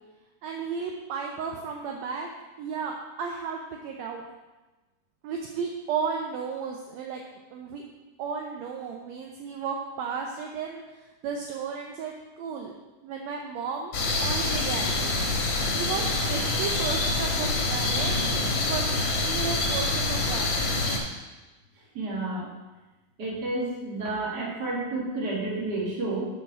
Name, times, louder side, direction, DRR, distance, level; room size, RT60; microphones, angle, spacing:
voice 1, 0.4-2.3 2.6-4.2 5.2-7.2 7.5-7.8 8.2-10.8 11.2-12.7 13.0-13.9 14.2-15.1 15.7-18.2 18.7-18.9 19.2-20.7, right 6 dB, 75° right, 1 dB, 1.6 m, -34 dB
sound 1, 13.9-21.0, left 2 dB, 50° left, 1.6 m, -26 dB
voice 2, 21.9-22.5 23.2-26.2, right 2 dB, 35° right, -4 dB, 2.0 m, -30 dB
7.1 x 5.9 x 5.9 m, 1.1 s
omnidirectional pair, 3.7 m